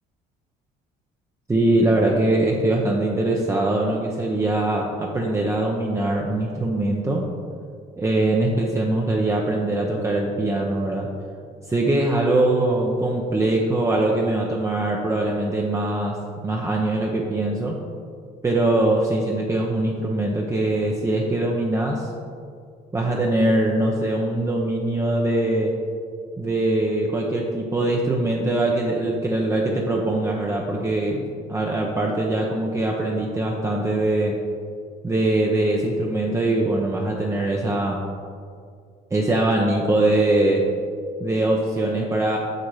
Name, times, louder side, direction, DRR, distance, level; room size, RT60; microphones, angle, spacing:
voice 1, 1.5-7.3 8.0-11.1 11.7-16.2 16.4-17.8 18.4-22.1 22.9-25.8 26.4-34.4 35.0-38.0 39.1-40.7 41.2-42.4, right 2 dB, 15° right, -1 dB, 0.7 m, -22 dB
6.6 x 5.9 x 4.9 m, 2.3 s
cardioid pair, 110°, 17 cm